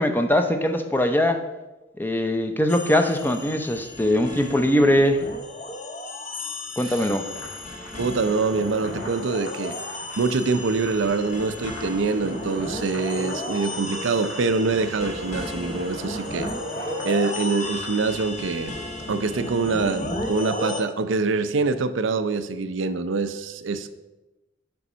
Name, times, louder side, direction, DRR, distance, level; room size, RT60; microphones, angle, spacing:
voice 1, 0.0-1.4 2.0-5.2 6.8-7.3, left 1 dB, 10° left, 6 dB, 0.6 m, -21 dB
sound 1, 2.7-20.8, left 1 dB, 40° left, 1.0 m, -34 dB
sound 2, 7.0-18.2, left 1 dB, 80° left, 2.9 m, -43 dB
voice 2, 8.0-9.8 10.2-16.5 17.0-18.7 19.1-23.9, right 4 dB, 80° right, 10 dB, 0.6 m, -25 dB
sound 3, 12.1-17.4, right 1 dB, 35° right, 0.8 m, -39 dB
6.9 x 5.3 x 6.1 m, 1.1 s
head